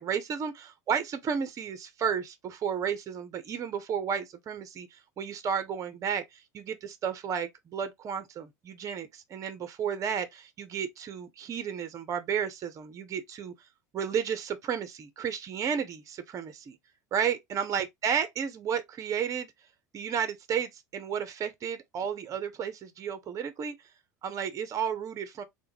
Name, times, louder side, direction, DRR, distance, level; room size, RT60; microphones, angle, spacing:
voice 1, 0.0-4.9 5.2-13.5 13.9-16.8 17.1-19.5 19.9-23.8 24.2-25.4, right 7 dB, 35° right, 0.7 m, -32 dB
3.4 x 2.2 x 3.2 m
hypercardioid pair, 85°, 10 cm